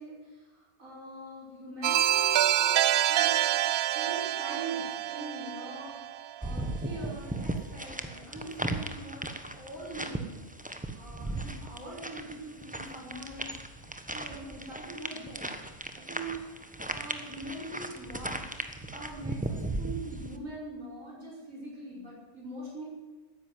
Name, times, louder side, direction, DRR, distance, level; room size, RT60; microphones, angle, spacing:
voice 1, 0.0-3.4 3.9-6.0 6.4-10.4 10.9-13.5 14.1-15.5 15.9-16.4 16.8-18.4 18.9-22.8, right 2 dB, 60° right, -5 dB, 6.1 m, -42 dB
sound 1, 1.8-6.6, right 13 dB, 80° right, 1.1 m, -27 dB
sound 2, 6.4-20.4, right 2 dB, 5° right, 0.9 m, -37 dB
14.0 x 10.5 x 9.6 m, 1.3 s
omnidirectional pair, 1.5 m